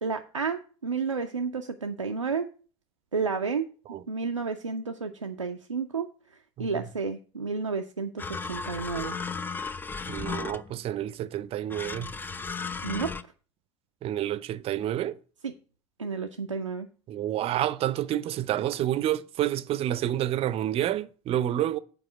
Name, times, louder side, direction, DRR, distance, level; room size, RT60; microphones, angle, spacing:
voice 1, 0.0-2.5 3.1-3.7 4.1-6.1 6.6-9.2 12.8-13.1 15.4-15.5 16.0-16.9, right 5 dB, 90° right, 0.4 m, -31 dB
voice 2, 6.6-6.9 10.1-12.1 14.0-15.2 17.1-21.8, right 12 dB, 40° right, 0.5 m, -29 dB
sound 1, 8.2-10.8 11.7-13.2, left 5 dB, 15° left, 0.4 m, -35 dB
7.7 x 4.7 x 5.8 m
figure-of-eight pair, 65°, 15 cm